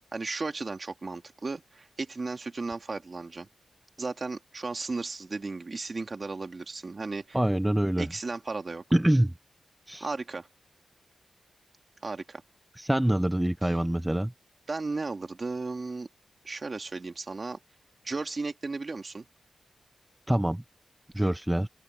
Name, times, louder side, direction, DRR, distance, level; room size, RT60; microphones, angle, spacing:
voice 1, 0.1-3.5 4.0-7.4 8.0-8.8 10.0-10.5 12.0-12.4 13.6-13.8 14.7-16.1 16.4-17.6 18.0-19.2 21.2-21.3, right 3 dB, 40° right, 2.2 m, -35 dB
voice 2, 7.3-8.1 8.9-9.3 9.9-10.1 12.8-14.3 20.3-20.6 21.1-21.7, right 1 dB, 10° right, 0.6 m, -25 dB
open air
wide cardioid pair, 85°, 0 cm